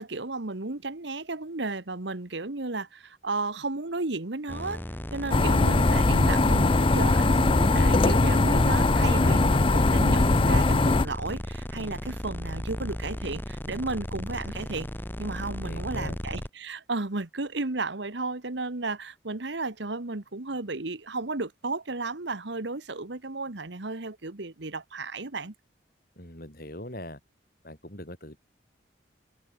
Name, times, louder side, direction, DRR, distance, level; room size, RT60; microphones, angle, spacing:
voice 1, 0.0-4.8 5.1-14.9 15.2-25.5, right 3 dB, 70° right, 1.4 m, -33 dB
sound 1, 4.5-16.5, equal, 10° left, 1.6 m, -35 dB
sound 2, 5.3-11.1, left 2 dB, 25° left, 0.5 m, -21 dB
voice 2, 15.6-16.2 26.2-27.2 27.6-28.4, left 1 dB, 50° left, 5.0 m, -41 dB
head